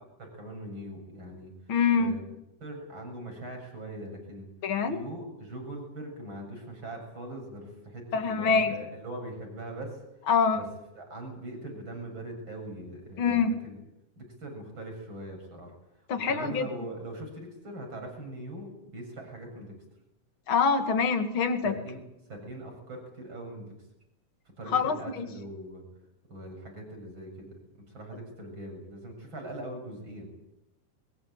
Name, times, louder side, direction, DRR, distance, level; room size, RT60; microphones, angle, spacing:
voice 1, 0.2-2.2 2.6-4.5 4.8-10.7 10.9-13.8 14.2-15.7 16.2-19.8 21.6-23.7 24.6-25.9 26.3-27.6 27.9-30.4, right 1 dB, 40° right, 3 dB, 8.0 m, -41 dB
voice 2, 1.7-2.2 4.6-5.0 8.1-8.7 10.3-10.6 13.2-13.5 16.1-16.7 20.5-21.8 24.7-25.3, left 5 dB, 45° left, 7 dB, 2.8 m, -25 dB
22.5 x 20.0 x 8.8 m, 0.87 s
omnidirectional pair, 3.4 m